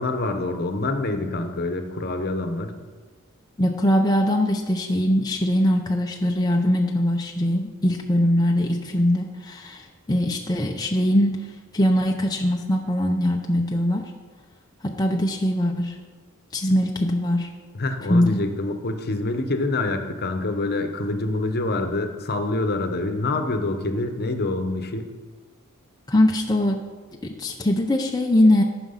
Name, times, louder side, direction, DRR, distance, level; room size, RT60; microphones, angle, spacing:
voice 1, 0.0-2.7 17.7-25.1, left 2 dB, 45° left, 7 dB, 0.9 m, -26 dB
voice 2, 3.6-11.4 11.7-14.1 14.8-16.0 16.5-17.5 18.1-18.4 26.1-26.8 27.2-28.6, left 1 dB, 20° left, 1 dB, 0.6 m, -21 dB
13.5 x 6.0 x 5.7 m, 1.4 s
head